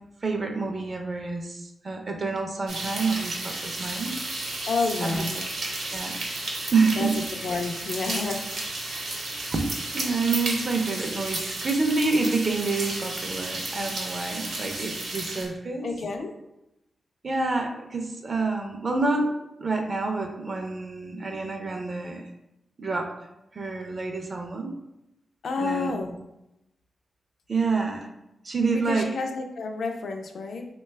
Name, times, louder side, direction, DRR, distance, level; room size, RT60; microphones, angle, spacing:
voice 1, 0.2-4.1 5.0-5.2 5.9-6.2 6.7-7.2 9.5-15.9 17.2-22.3 22.8-23.1 23.5-24.7 25.6-25.9 27.5-28.1 28.4-29.2, right 3 dB, 35° right, 3 dB, 0.4 m, -28 dB
sound 1, 2.7-15.5, right 2 dB, 75° right, 0.8 m, -33 dB
voice 2, 4.7-5.4 5.8-5.9 7.0-7.1 7.4-8.4 15.8-16.3 25.4-26.2 28.9-30.7, left 4 dB, 70° left, 3 dB, 0.4 m, -29 dB
3.2 x 2.2 x 3.2 m, 0.88 s
wide cardioid pair, 140°, 0 cm